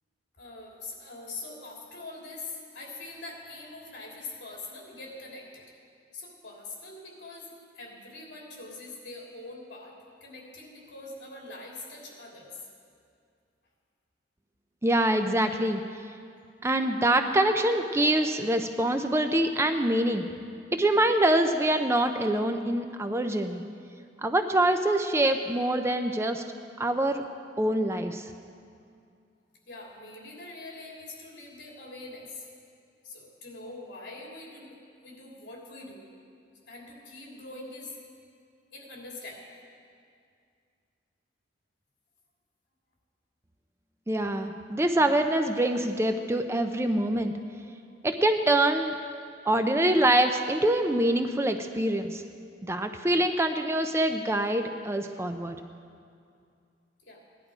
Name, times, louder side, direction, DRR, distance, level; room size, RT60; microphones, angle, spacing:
voice 1, 0.4-5.6 6.1-12.6 29.7-32.5 33.0-36.1 36.7-38.0 38.7-39.4 57.0-57.2, left 2 dB, 70° left, -3 dB, 3.3 m, -43 dB
voice 2, 14.8-15.8 16.6-20.3 20.7-23.6 24.2-26.4 26.8-27.2 27.6-28.2 44.1-47.3 48.0-48.9 49.5-52.2 52.6-55.6, right 1 dB, 15° right, 6 dB, 0.5 m, -25 dB
17.0 x 11.0 x 5.0 m, 2.4 s
head